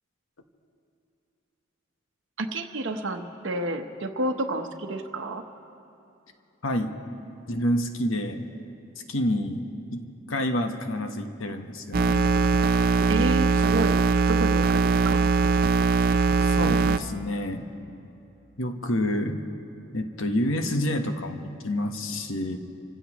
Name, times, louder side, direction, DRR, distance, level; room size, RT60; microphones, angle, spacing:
voice 1, 2.4-5.4 13.1-14.0 14.3-15.3, right 1 dB, 65° right, 5 dB, 0.9 m, -30 dB
voice 2, 6.6-6.9 7.5-8.4 9.1-12.3 16.4-17.6 18.6-19.4 19.9-22.6, left 1 dB, 75° left, 6 dB, 1.1 m, -28 dB
sound 1, 11.9-17.0, right 4 dB, 45° right, 0.4 m, -21 dB
29.0 x 16.0 x 3.0 m, 2.9 s
head